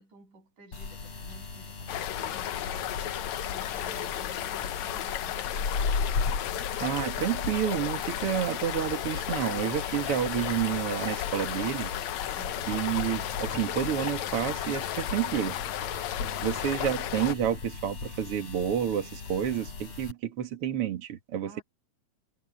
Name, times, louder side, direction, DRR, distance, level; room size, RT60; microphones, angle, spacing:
voice 1, 0.0-6.1 12.4-12.7 16.5-16.8 21.4-21.6, right 2 dB, 80° right, 9.2 m, -52 dB
sound 1, 0.7-20.1, left 4 dB, 50° left, 5.4 m, -38 dB
sound 2, 1.9-17.3, left 12 dB, 70° left, 2.1 m, -34 dB
voice 2, 6.8-11.9 12.3-12.4 12.7-15.6 16.4-21.6, right 9 dB, 50° right, 2.6 m, -30 dB
omnidirectional pair, 3.6 m